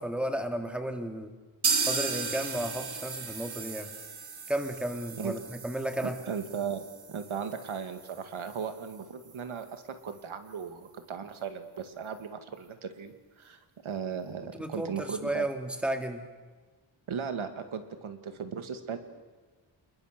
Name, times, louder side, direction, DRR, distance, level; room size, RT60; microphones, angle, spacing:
voice 1, 0.0-1.3 1.8-3.9 4.5-6.2 14.5-16.2, right 1 dB, ahead, 5 dB, 2.1 m, -33 dB
sound 1, 1.6-9.4 9.7-9.8 10.1-10.2 10.6-10.7, right 5 dB, 50° right, 1.9 m, -35 dB
voice 2, 6.2-6.8 7.1-15.5 17.1-19.0, right 7 dB, 85° right, 8 dB, 2.1 m, -37 dB
29.0 x 21.0 x 6.7 m, 1.3 s
wide cardioid pair, 130°, 47 cm